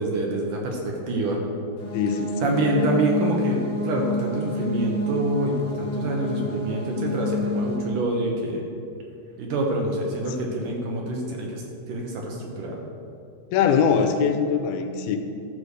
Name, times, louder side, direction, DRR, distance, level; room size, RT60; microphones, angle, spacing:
voice 1, 0.0-1.4 2.4-8.6 9.4-12.8, right 2 dB, 70° right, 0 dB, 2.3 m, -26 dB
sound 1, 1.8-7.8, left 2 dB, 50° left, 2.0 m, -29 dB
voice 2, 1.9-2.6 13.5-15.2, left 6 dB, 85° left, 7 dB, 2.4 m, -22 dB
12.5 x 5.0 x 6.4 m, 2.6 s
omnidirectional pair, 4.5 m